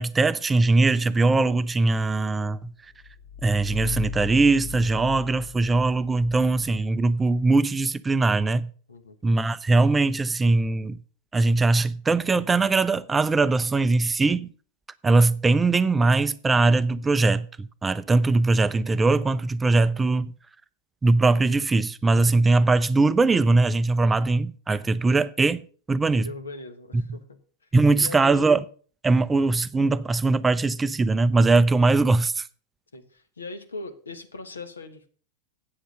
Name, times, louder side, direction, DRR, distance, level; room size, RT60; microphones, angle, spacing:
voice 1, 0.0-2.7 3.4-8.7 9.2-11.0 11.3-14.5 15.0-20.3 21.0-25.6 25.9-26.3 26.9-27.0 27.7-28.6 29.0-32.5, right 3 dB, 15° right, 0.4 m, -21 dB
sound 1, 2.8-7.5, left 8 dB, 55° left, 1.1 m, -38 dB
voice 2, 26.2-27.2 28.0-28.5 32.9-35.1, left 3 dB, 75° left, 1.2 m, -39 dB
8.7 x 7.7 x 6.4 m
figure-of-eight pair, 90°, 0 cm